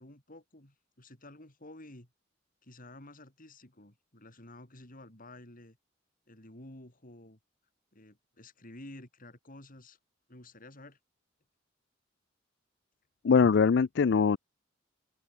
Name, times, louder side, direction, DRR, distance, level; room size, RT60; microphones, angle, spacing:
voice 1, 0.0-2.1 2.6-5.8 6.3-7.4 7.9-10.0 10.3-11.0, left 1 dB, 45° left, 4.7 m, -51 dB
voice 2, 13.2-14.4, left 5 dB, 60° left, 0.4 m, -22 dB
open air
head